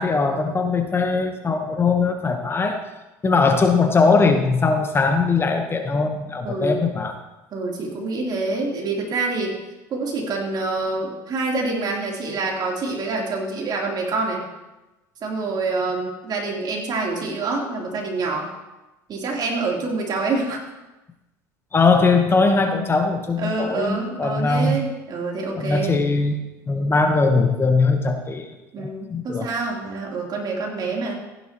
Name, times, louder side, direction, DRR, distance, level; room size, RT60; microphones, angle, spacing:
voice 1, 0.0-2.8 3.2-7.1 21.7-24.8 25.6-26.4 26.7-29.5, left 4 dB, 25° left, 5 dB, 1.1 m, -20 dB
voice 2, 6.4-6.9 7.5-9.6 9.9-14.4 15.2-18.5 19.1-20.6 23.4-26.0 28.7-31.2, right 3 dB, 45° right, -1 dB, 3.5 m, -26 dB
15.0 x 10.5 x 3.0 m, 1.0 s
hypercardioid pair, 85°, 10 cm